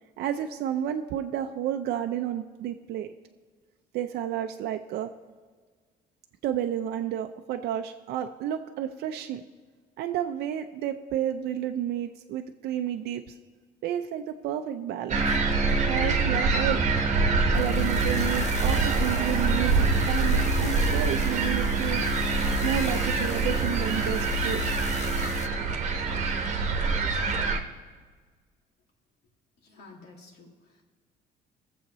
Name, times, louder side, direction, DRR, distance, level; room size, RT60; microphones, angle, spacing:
voice 1, 0.2-3.1 3.9-5.1 6.4-9.4 10.0-13.4 13.8-15.2 15.9-17.0 17.5-22.1 22.6-24.6, right 10 dB, 75° right, 5 dB, 0.5 m, -31 dB
sound 1, 15.1-27.6, right 4 dB, 45° right, 1.1 m, -25 dB
sound 2, 15.6-25.5, left 15 dB, 45° left, 0.4 m, -37 dB
voice 2, 29.6-30.8, left 3 dB, 75° left, 0 dB, 2.2 m, -51 dB
21.5 x 7.2 x 3.1 m, 1.5 s
cardioid pair, 110°, 17 cm